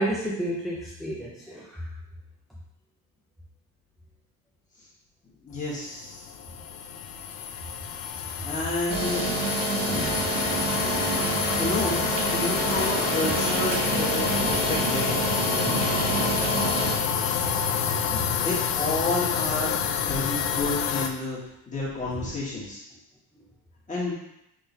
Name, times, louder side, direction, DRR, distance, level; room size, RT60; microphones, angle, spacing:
voice 1, 0.0-1.8 10.8-11.0 18.1-18.2, right 1 dB, ahead, -4 dB, 0.4 m, -31 dB
voice 2, 5.4-6.3 8.4-9.2 9.9-10.2 11.5-12.0 12.3-15.3 17.2-17.4 18.4-19.8 20.1-21.4 21.7-22.8 23.9-24.1, left 2 dB, 15° left, -7 dB, 1.6 m, -30 dB
sound 1, 5.9-21.1, left 7 dB, 80° left, 0.6 m, -28 dB
sound 2, 8.9-17.0, right 3 dB, 65° right, 1.0 m, -28 dB
4.7 x 3.8 x 2.7 m, 0.80 s
cardioid pair, 135°, 43 cm